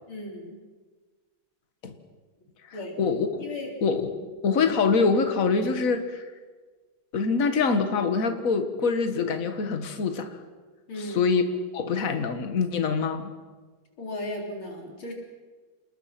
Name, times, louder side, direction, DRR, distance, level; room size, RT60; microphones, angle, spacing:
voice 1, 0.1-0.6 2.7-2.9 3.4-3.7 4.2-4.3 10.9-11.3 14.0-15.1, left 1 dB, 85° left, 0 dB, 4.9 m, -36 dB
voice 2, 3.0-3.4 3.8-4.1 4.4-6.2 7.1-10.4 11.0-11.4 11.7-13.3, left 5 dB, 45° left, 7 dB, 1.9 m, -24 dB
28.5 x 20.5 x 6.1 m, 1.4 s
omnidirectional pair, 2.2 m